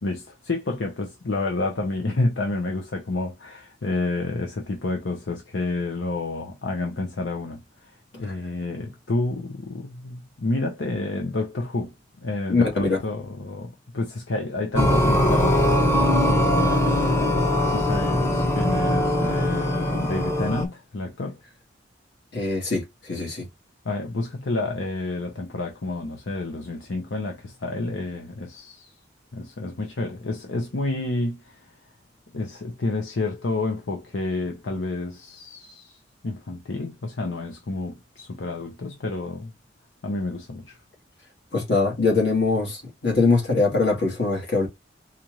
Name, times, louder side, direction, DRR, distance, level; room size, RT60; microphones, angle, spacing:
voice 1, 0.0-7.6 8.1-21.4 23.8-28.9 29.3-31.6 32.3-36.0 36.2-39.5 40.0-40.8, left 2 dB, 85° left, 0.7 m, -29 dB
voice 2, 12.5-13.0 22.3-23.5 41.5-44.7, left 3 dB, 65° left, 1.8 m, -22 dB
sound 1, 14.8-20.7, left 1 dB, 15° left, 0.8 m, -21 dB
4.2 x 2.5 x 3.0 m
head